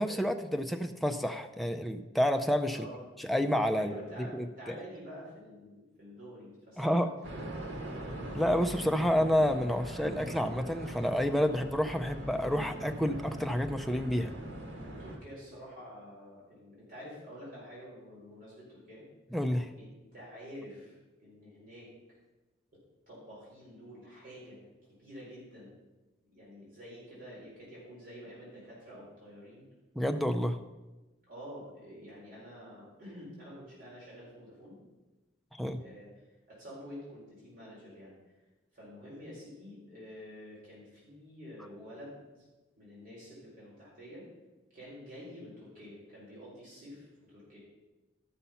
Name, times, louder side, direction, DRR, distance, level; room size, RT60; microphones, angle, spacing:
voice 1, 0.0-2.9 3.2-4.0 4.3-4.7 6.8-7.1 8.3-14.3 19.3-19.7 30.0-30.6 35.6-35.8, equal, ahead, 6 dB, 0.5 m, -29 dB
voice 2, 2.7-3.0 3.7-8.0 14.8-19.0 19.8-20.9 21.2-21.9 23.1-25.7 26.3-29.6 31.3-34.8 35.8-36.1 36.5-38.1 38.7-42.2 42.8-44.3 44.7-47.6, equal, 50° right, -7 dB, 4.2 m, -48 dB
sound 1, 7.2-15.2, right 1 dB, 80° right, 1.9 m, -41 dB
13.0 x 5.7 x 5.6 m, 1.1 s
head